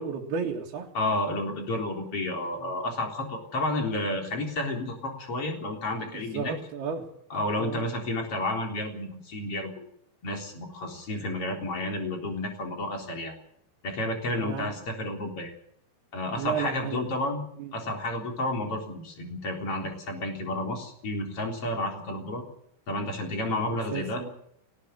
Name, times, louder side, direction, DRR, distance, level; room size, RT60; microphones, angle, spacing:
voice 1, 0.0-0.9 2.6-2.7 6.1-7.0 7.6-7.9 14.4-14.7 16.4-17.1 17.6-17.7 23.3-24.3, right 6 dB, 75° right, -2 dB, 4.1 m, -34 dB
voice 2, 0.9-6.5 7.3-9.8 10.2-13.3 13.8-15.5 16.1-17.4 17.7-22.4 22.9-24.2, left 1 dB, 35° left, 3 dB, 4.5 m, -31 dB
18.5 x 18.5 x 8.2 m, 0.69 s
omnidirectional pair, 4.6 m